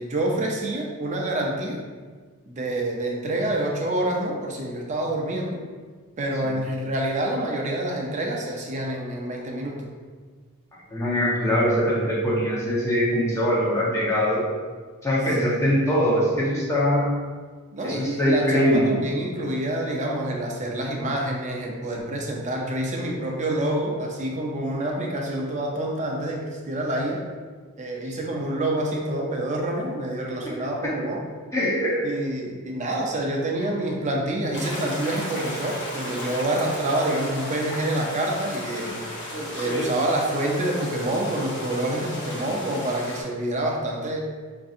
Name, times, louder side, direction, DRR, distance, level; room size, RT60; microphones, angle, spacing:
voice 1, 0.0-1.8 2.5-5.6 6.2-9.9 15.4-15.7 17.7-27.2 27.8-31.2 32.0-39.0 39.5-44.2, right 1 dB, 35° right, 0 dB, 0.5 m, -27 dB
voice 2, 10.9-14.5 15.0-17.2 17.8-18.9 30.4-30.5 30.8-30.9 31.5-32.1, equal, 15° left, -6 dB, 0.8 m, -22 dB
sound 1, 34.5-43.2, equal, 55° left, 0.8 m, -34 dB
5.2 x 2.6 x 2.5 m, 1.5 s
head